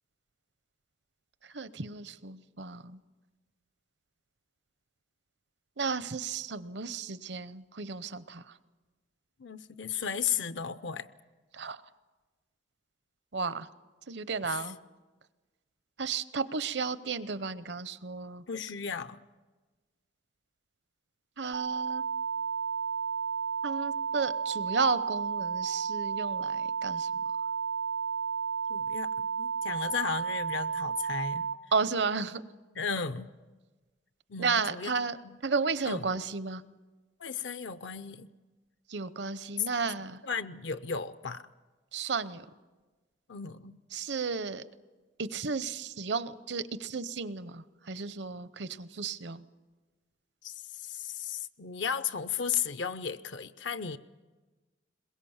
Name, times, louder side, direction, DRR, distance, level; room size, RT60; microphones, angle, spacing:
voice 1, 1.4-3.0 5.8-8.4 11.5-11.8 13.3-13.7 14.1-14.8 16.0-18.4 21.4-22.0 23.6-27.1 31.7-32.4 34.4-35.2 35.4-36.6 38.9-40.2 41.9-42.4 43.9-44.6 45.2-49.4, right 4 dB, 65° right, 14 dB, 0.8 m, -33 dB
voice 2, 9.4-11.1 14.4-14.7 18.5-19.2 28.7-31.5 32.8-33.3 34.3-34.9 35.2-35.4 35.8-36.0 37.2-38.3 39.6-39.7 40.2-41.5 43.3-43.8 50.4-54.0, left 7 dB, 70° left, 12 dB, 0.6 m, -35 dB
sound 1, 21.5-31.5, right 5 dB, 80° right, 1.3 m, -32 dB
22.0 x 21.5 x 7.2 m, 1.3 s
head